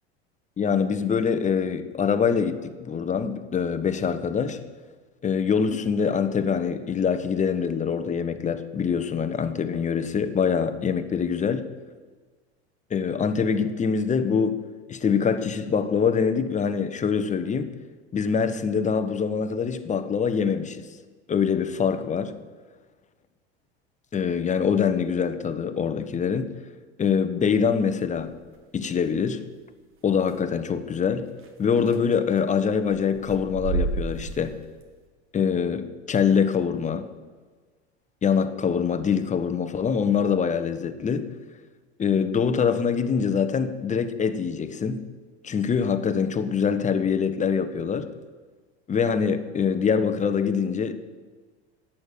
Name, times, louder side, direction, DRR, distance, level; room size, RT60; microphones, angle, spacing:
voice 1, 0.6-4.6 5.2-11.7 12.9-17.7 18.1-20.9 21.3-22.3 24.1-26.5 27.0-28.4 28.7-29.5 30.0-31.3 31.6-34.6 35.3-37.1 38.2-41.3 42.0-45.1 45.4-48.1 48.9-51.0, left 6 dB, 20° left, 1.2 m, -24 dB
sound 1, 28.1-28.5 30.3-30.4 31.4-31.5 31.8-32.4 32.9-34.8, right 3 dB, 40° right, 2.2 m, -30 dB
11.5 x 8.8 x 9.3 m
hypercardioid pair, 95°, 32 cm